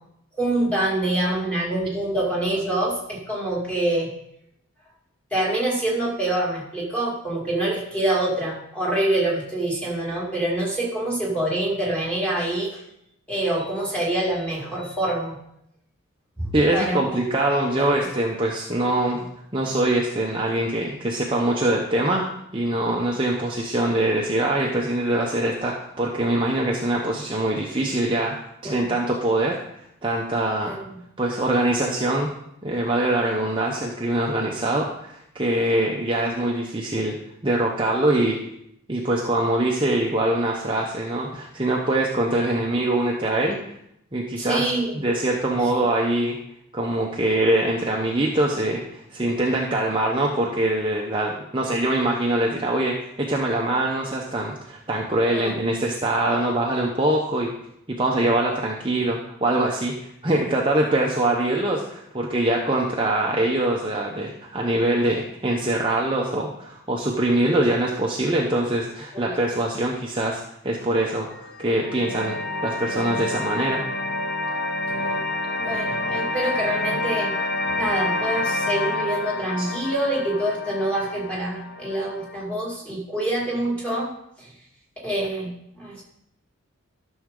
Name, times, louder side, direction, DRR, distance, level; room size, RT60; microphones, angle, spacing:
voice 1, 0.4-4.1 5.3-12.8 13.3-15.4 16.4-17.0 17.8-17.9 28.6-28.9 30.6-31.0 44.4-45.0 45.6-45.8 55.3-55.5 69.5-69.6 74.9-75.2 75.6-77.4 77.8-84.1 84.4-84.5 85.0-86.0, right 1 dB, 5° left, -5 dB, 2.2 m, -26 dB
voice 2, 16.5-19.2 19.5-22.3 22.5-29.6 30.0-30.7 31.2-32.3 32.6-37.2 37.4-38.4 38.9-43.6 44.1-44.6 44.9-46.4 46.7-57.5 58.0-72.4 72.6-73.8 79.6-79.7, right 1 dB, 20° right, -1 dB, 0.7 m, -23 dB
sound 1, 71.3-82.4, left 2 dB, 45° left, 0.8 m, -28 dB
12.0 x 6.3 x 3.7 m, 0.78 s
head